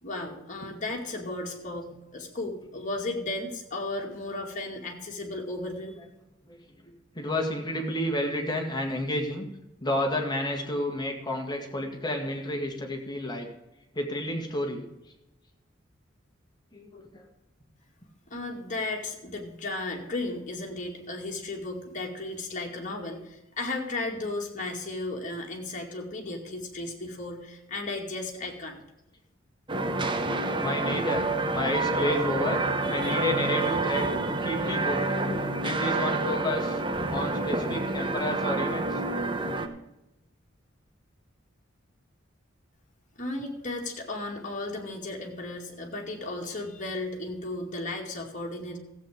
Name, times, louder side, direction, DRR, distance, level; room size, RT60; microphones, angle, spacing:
voice 1, 0.0-6.0 18.3-28.8 43.2-48.8, left 2 dB, 40° left, 0 dB, 2.4 m, -35 dB
voice 2, 6.8-9.4 9.8-13.5 13.9-14.8 16.7-17.3 30.6-31.3 31.5-32.6 32.9-35.0 35.6-36.8 37.1-39.0, left 1 dB, 20° left, 2 dB, 2.1 m, -30 dB
sound 1, 29.7-39.7, right 2 dB, 25° right, 1.0 m, -28 dB
14.5 x 8.2 x 5.1 m, 0.94 s
head